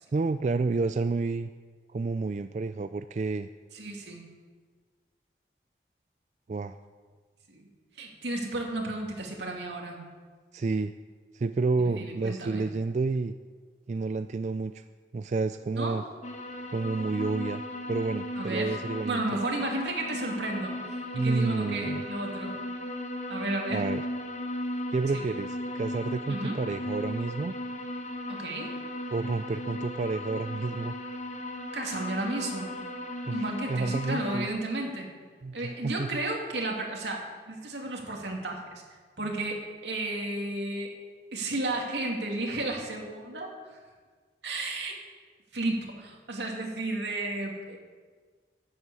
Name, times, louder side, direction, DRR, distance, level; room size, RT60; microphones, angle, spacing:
voice 1, 0.1-1.5 1.9-3.5 6.5-6.8 10.5-10.9 11.3-13.3 13.9-14.8 15.1-16.0 16.7-17.6 17.9-19.2 21.1-22.0 23.7-24.0 24.9-27.5 29.1-30.9 33.3-33.4 33.7-34.5 35.4-36.2, right 3 dB, 40° right, 11 dB, 0.3 m, -30 dB
voice 2, 3.7-4.2 7.5-7.6 8.0-10.0 11.8-12.7 15.8-16.0 18.4-18.8 19.0-22.5 23.3-23.9 25.1-25.2 26.3-26.6 28.3-28.7 31.7-32.8 33.3-35.1 35.5-38.8 39.2-40.9 41.3-43.8 44.4-45.0 45.5-47.8, right 2 dB, 85° right, 0 dB, 2.5 m, -33 dB
sound 1, 16.2-34.5, left 1 dB, 40° left, 1.1 m, -36 dB
12.0 x 7.9 x 8.4 m, 1.5 s
head